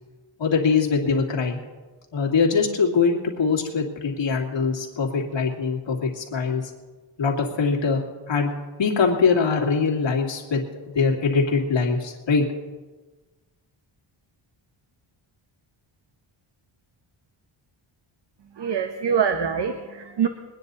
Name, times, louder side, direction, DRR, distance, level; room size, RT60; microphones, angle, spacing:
voice 1, 0.4-1.6 2.1-6.6 7.2-8.5 8.8-10.6 10.9-12.4, left 5 dB, 60° left, 0 dB, 2.4 m, -22 dB
voice 2, 18.6-20.3, right 7 dB, 55° right, 6 dB, 1.0 m, -24 dB
22.5 x 9.8 x 4.1 m, 1.3 s
wide cardioid pair, 120°, 50 cm